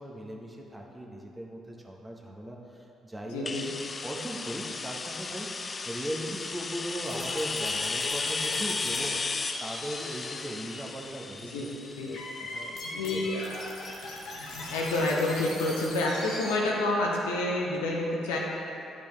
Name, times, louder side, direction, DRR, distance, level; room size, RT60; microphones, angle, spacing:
voice 1, 0.0-3.5 4.0-5.6 5.8-11.7 12.1-13.2 14.1-14.2, right 1 dB, 10° right, -1 dB, 1.2 m, -39 dB
voice 2, 3.3-3.7 11.4-11.6 12.0-12.1 12.9-13.6 13.9-18.4, left 2 dB, 75° left, -2 dB, 0.9 m, -29 dB
sound 1, 3.5-13.1, left 4 dB, 35° left, 0.3 m, -34 dB
sound 2, 7.0-16.5, left 2 dB, 60° left, 1.1 m, -41 dB
10.0 x 5.2 x 3.3 m, 2.8 s
hypercardioid pair, 45°, 0 cm